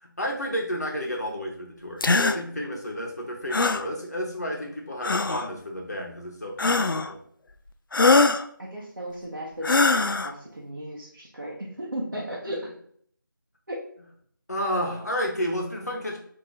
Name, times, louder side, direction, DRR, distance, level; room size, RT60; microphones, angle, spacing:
voice 1, 0.0-7.2 12.5-12.7 14.5-16.2, equal, 50° left, 0 dB, 1.1 m, -31 dB
sound 1, 2.0-2.4 3.5-3.9 5.0-5.5 6.6-7.1 7.9-8.4 9.6-10.3, left 3 dB, 70° left, 0.4 m, -21 dB
voice 2, 8.6-12.7 13.7-13.8, equal, 55° right, -5 dB, 0.9 m, -35 dB
3.7 x 2.8 x 4.0 m, 0.63 s
figure-of-eight pair, 180°, 11 cm